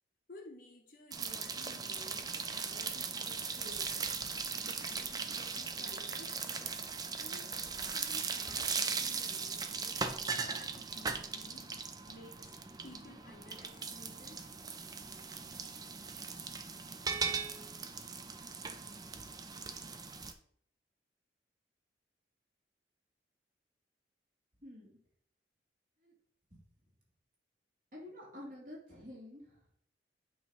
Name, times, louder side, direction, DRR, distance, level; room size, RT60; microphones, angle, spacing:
voice 1, 0.3-6.4 7.2-12.6 12.8-14.4, left 1 dB, 50° left, 0 dB, 0.7 m, -55 dB
sound 1, 1.1-20.3, right 5 dB, 20° right, 0.5 m, -39 dB
voice 2, 24.6-24.9 26.0-26.1 26.5-26.6 27.9-29.7, left 1 dB, 50° right, -4 dB, 2.7 m, -49 dB
8.6 x 3.0 x 5.3 m, 0.64 s
head